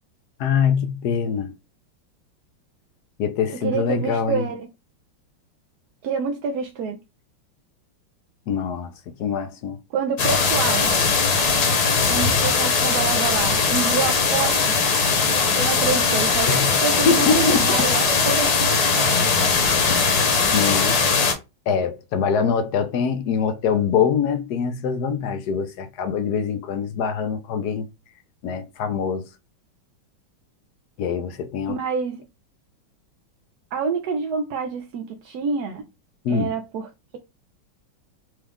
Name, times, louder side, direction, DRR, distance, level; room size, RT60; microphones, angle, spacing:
voice 1, 0.4-1.5 3.2-4.5 8.5-9.8 16.5-16.7 17.1-17.9 20.5-21.2 21.7-27.9 28.4-29.3 31.0-31.8 36.2-36.5, left 6 dB, 70° left, 1.0 m, -24 dB
voice 2, 3.6-4.7 6.0-7.0 9.9-10.9 12.1-14.8 15.6-19.3 31.7-32.3 33.7-35.8 36.3-37.2, right 5 dB, 70° right, 0.9 m, -27 dB
sound 1, 10.2-21.3, left 4 dB, 55° left, 1.5 m, -20 dB
6.2 x 2.4 x 3.5 m
omnidirectional pair, 2.2 m